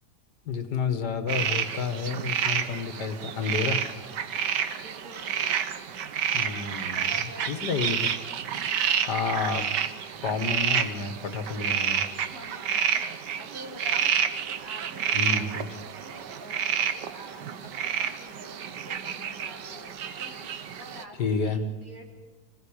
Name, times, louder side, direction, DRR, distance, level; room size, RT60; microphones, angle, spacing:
voice 1, 0.5-3.8 6.3-7.1 7.5-8.0 9.0-9.7 10.2-12.1 15.1-15.7 21.2-21.6, left 5 dB, 75° left, 9 dB, 2.1 m, -30 dB
sound 1, 1.3-21.0, right 8 dB, 90° right, 1.7 m, -29 dB
voice 2, 3.4-4.2 4.7-5.7 6.9-8.0 12.1-22.0, right 1 dB, 55° right, 0 dB, 4.4 m, -48 dB
26.0 x 16.0 x 8.8 m, 1.3 s
omnidirectional pair, 1.8 m